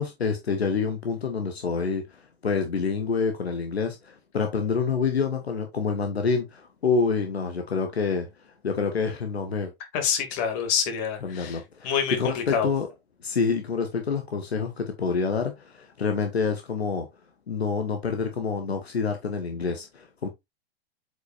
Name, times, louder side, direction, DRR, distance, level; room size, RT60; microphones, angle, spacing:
voice 1, 0.0-8.3 8.6-9.7 11.2-12.9 13.2-17.1 17.5-20.3, left 5 dB, 80° left, 1.2 m, -27 dB
voice 2, 9.9-12.7, left 7 dB, 45° left, 2.4 m, -27 dB
7.8 x 5.4 x 2.5 m
figure-of-eight pair, 95°, 31 cm